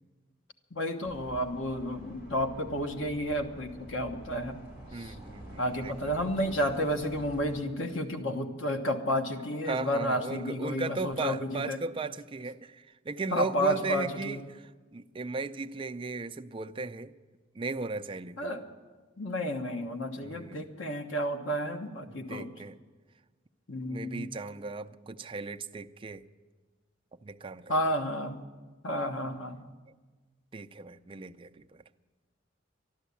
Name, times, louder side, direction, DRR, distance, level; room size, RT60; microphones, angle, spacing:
voice 1, 0.7-4.6 4.9-5.1 5.6-11.8 13.3-14.4 18.4-18.6 19.2-22.5 23.7-24.2 27.7-28.4 28.8-29.6, equal, 80° left, 5 dB, 1.2 m, -31 dB
sound 1, 1.0-7.6, right 1 dB, 50° left, 5.0 m, -48 dB
voice 2, 4.9-6.2 9.7-17.1 17.5-18.5 20.2-20.7 22.1-22.8 23.9-26.2 27.2-27.8 30.5-31.8, right 3 dB, 25° right, 7 dB, 0.4 m, -37 dB
13.0 x 11.5 x 8.4 m, 1.4 s
head